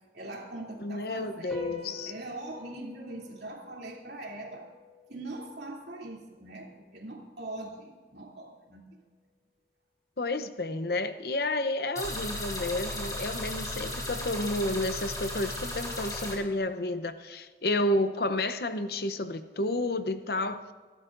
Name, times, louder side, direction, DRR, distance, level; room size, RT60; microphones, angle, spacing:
voice 1, 0.1-4.7 5.1-8.9, right 2 dB, 65° right, 3.0 m, -42 dB
voice 2, 0.8-2.1 10.2-20.7, left 2 dB, 60° left, 0.8 m, -31 dB
sound 1, 1.5-8.2, left 3 dB, 5° left, 3.2 m, -49 dB
sound 2, 12.0-16.3, left 1 dB, 20° left, 3.4 m, -35 dB
25.5 x 12.5 x 2.6 m
head